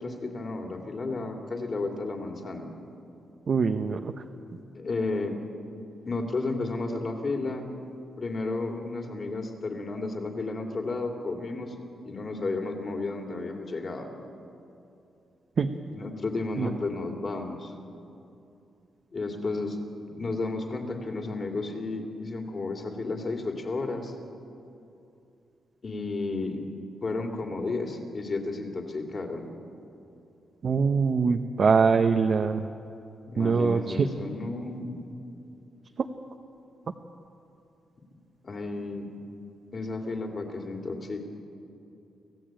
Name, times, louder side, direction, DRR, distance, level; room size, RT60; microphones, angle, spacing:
voice 1, 0.0-2.7 4.7-5.4 6.0-7.7 8.2-11.7 12.0-14.1 15.9-17.7 19.1-19.8 20.1-24.1 25.8-26.6 27.0-29.4 33.3-35.0 38.4-39.1 39.7-41.3, left 3 dB, 35° left, 3 dB, 2.8 m, -32 dB
voice 2, 3.5-4.1 15.6-15.7 16.6-16.7 30.6-32.7 33.4-34.1, right 5 dB, 45° right, 5 dB, 0.8 m, -23 dB
25.5 x 16.0 x 9.0 m, 2.7 s
wide cardioid pair, 140°, 0 cm